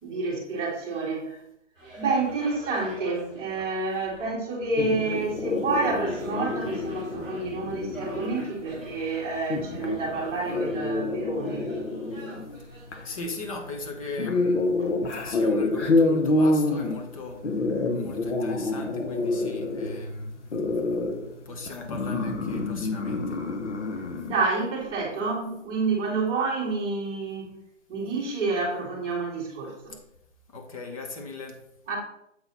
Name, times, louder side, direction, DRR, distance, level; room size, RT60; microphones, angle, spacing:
voice 1, 0.0-1.4 2.0-11.7 14.8-14.9 24.2-27.5 27.9-29.9 31.9-32.0, right 3 dB, 15° right, -6 dB, 1.9 m, -29 dB
sound 1, 1.7-13.0, right 2 dB, 5° left, 0.5 m, -46 dB
sound 2, 4.8-24.3, left 2 dB, 65° left, 1.1 m, -28 dB
voice 2, 13.0-14.7 15.1-17.4 17.9-20.4 21.5-23.4 30.5-31.6, left 2 dB, 25° left, 3 dB, 1.0 m, -38 dB
7.8 x 4.0 x 4.0 m, 0.78 s
hypercardioid pair, 160°, 38 cm